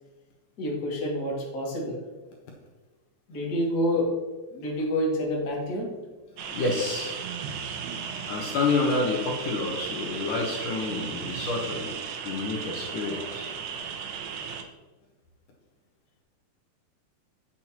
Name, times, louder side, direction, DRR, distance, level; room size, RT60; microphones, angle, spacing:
voice 1, 0.6-2.0 3.3-4.1 4.5-5.9, equal, 30° left, -3 dB, 2.0 m, -28 dB
voice 2, 6.3-7.1 8.2-12.0 12.2-13.5, left 3 dB, 65° left, -1 dB, 2.5 m, -29 dB
sound 1, 6.4-14.6, right 6 dB, 85° right, 2.7 m, -35 dB
9.2 x 9.1 x 2.9 m, 1.2 s
omnidirectional pair, 4.2 m